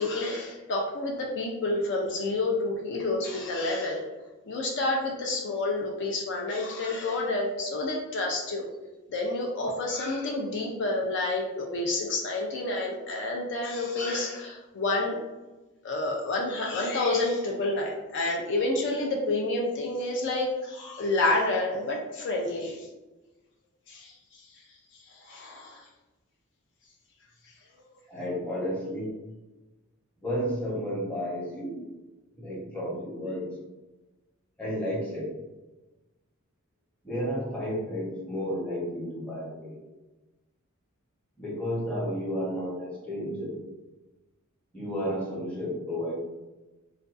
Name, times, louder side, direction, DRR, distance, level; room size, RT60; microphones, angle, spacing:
voice 1, 0.0-4.0 4.5-8.7 9.1-15.2 15.8-22.9 23.9-24.5 24.9-25.9, left 2 dB, 55° left, -1 dB, 0.4 m, -29 dB
voice 2, 28.1-29.1 30.2-31.8 32.3-33.5 34.6-35.4 37.0-39.8 41.4-43.6 44.7-46.1, equal, 5° left, -7 dB, 0.8 m, -32 dB
2.4 x 2.2 x 2.4 m, 1.1 s
head